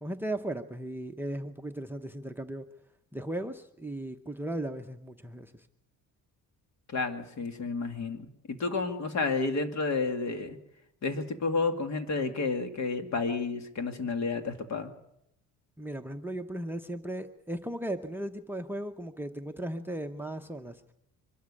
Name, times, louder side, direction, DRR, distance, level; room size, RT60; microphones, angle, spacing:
voice 1, 0.0-2.7 3.1-5.7 15.8-20.9, right 1 dB, 5° right, 9 dB, 0.8 m, -36 dB
voice 2, 6.9-10.6 11.0-14.9, left 4 dB, 50° left, 7 dB, 2.4 m, -31 dB
24.0 x 13.0 x 8.4 m, 0.78 s
cardioid pair, 140°, 34 cm